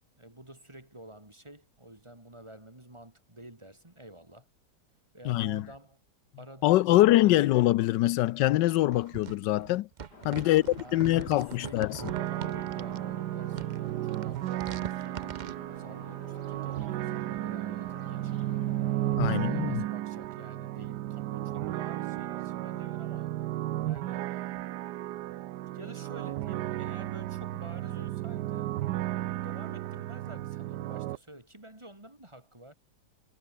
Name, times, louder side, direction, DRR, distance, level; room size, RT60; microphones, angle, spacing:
voice 1, 0.2-4.5 5.1-6.0 6.4-7.5 10.3-15.4 15.8-18.9 19.3-23.3 23.8-24.3 25.7-28.7 29.1-32.7, right 1 dB, 15° right, 2.7 m, -49 dB
voice 2, 5.3-5.6 6.6-9.9 10.2-10.6 10.9-12.0 19.2-19.8, left 16 dB, 80° left, 1.2 m, -24 dB
sound 1, 8.9-13.0 13.4-15.6, right 7 dB, 60° right, 0.4 m, -43 dB
sound 2, 10.1-19.2, left 3 dB, 65° left, 4.7 m, -52 dB
sound 3, 12.0-31.2, right 14 dB, 75° right, 1.2 m, -34 dB
omnidirectional pair, 1.9 m